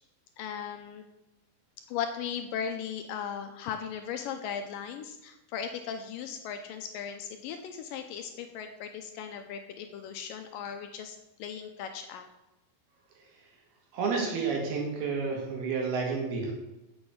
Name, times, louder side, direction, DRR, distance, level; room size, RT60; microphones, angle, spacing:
voice 1, 0.4-1.0 1.9-12.2, left 7 dB, 80° left, 6 dB, 2.0 m, -37 dB
voice 2, 13.1-13.5 13.9-16.5, right 4 dB, 85° right, 0 dB, 4.1 m, -31 dB
7.0 x 6.9 x 7.9 m, 1.0 s
omnidirectional pair, 4.4 m